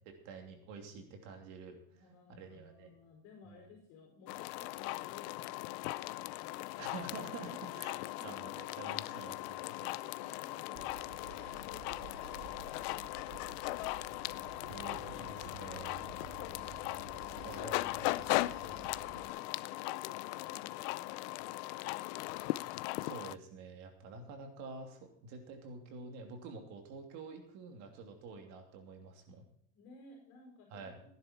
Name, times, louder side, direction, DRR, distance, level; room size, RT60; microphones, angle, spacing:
voice 1, 0.0-1.8 2.4-2.9 3.4-3.6 6.8-10.0 14.3-16.0 17.4-18.2 18.6-18.8 23.0-29.4 30.7-31.0, right 4 dB, 55° right, 3 dB, 2.9 m, -48 dB
voice 2, 1.9-6.9 7.4-8.3 9.6-13.5 16.5-22.6 29.7-31.1, left 5 dB, 50° left, 1 dB, 5.2 m, -57 dB
sound 1, 4.3-23.4, left 20 dB, 90° left, 0.6 m, -39 dB
Bell / Train, 10.7-19.3, right 8 dB, 75° right, 1.2 m, -53 dB
16.5 x 10.5 x 4.4 m, 0.68 s
cardioid pair, 180°, 32 cm